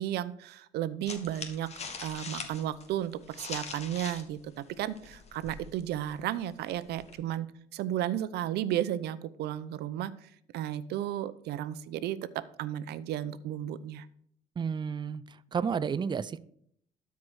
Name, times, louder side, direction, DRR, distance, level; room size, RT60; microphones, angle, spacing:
voice 1, 0.0-1.7 2.0-12.2 12.6-14.1, right 11 dB, 75° right, 15 dB, 0.7 m, -34 dB
sound 1, 1.0-4.3 4.6-7.1, left 4 dB, 40° left, 1.8 m, -43 dB
voice 2, 14.6-15.2 15.5-16.4, right 6 dB, 25° right, 16 dB, 0.5 m, -31 dB
13.0 x 4.8 x 6.3 m, 0.67 s
cardioid pair, 110°, 17 cm